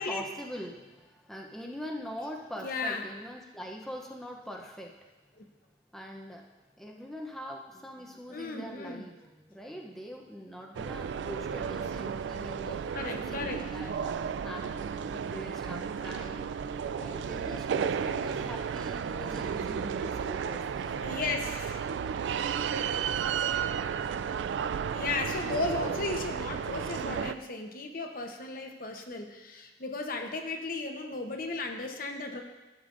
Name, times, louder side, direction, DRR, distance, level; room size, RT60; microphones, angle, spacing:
voice 1, 0.0-5.1 5.9-6.5 6.8-16.5 17.0-21.0 21.3-21.4 23.7-24.4, equal, ahead, -1 dB, 0.6 m, -43 dB
voice 2, 2.6-3.0 5.4-5.5 8.3-9.0 12.9-13.6 21.0-21.8 24.9-32.4, left 3 dB, 50° left, 3 dB, 0.9 m, -35 dB
sound 1, 10.7-27.3, right 7 dB, 85° right, 0.3 m, -33 dB
13.5 x 6.8 x 2.5 m, 1.1 s
head